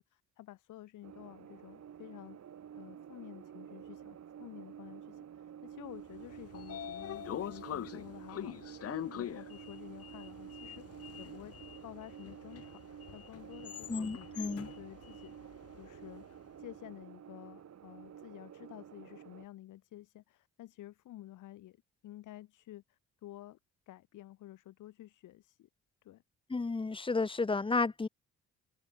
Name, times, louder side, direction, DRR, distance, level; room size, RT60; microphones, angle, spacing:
voice 1, 0.0-2.4 2.8-11.6 11.8-15.4 15.7-16.2 16.6-21.8 22.0-23.6 23.9-25.7 26.0-26.2, left 14 dB, 85° left, 7.2 m, -51 dB
sound 1, 1.0-19.5, right 9 dB, 60° right, 5.7 m, -50 dB
Sliding door, 6.1-16.3, left 11 dB, 50° left, 0.8 m, -44 dB
voice 2, 13.9-14.7 26.5-28.1, left 3 dB, 15° left, 0.9 m, -32 dB
cardioid pair, 90°, 30 cm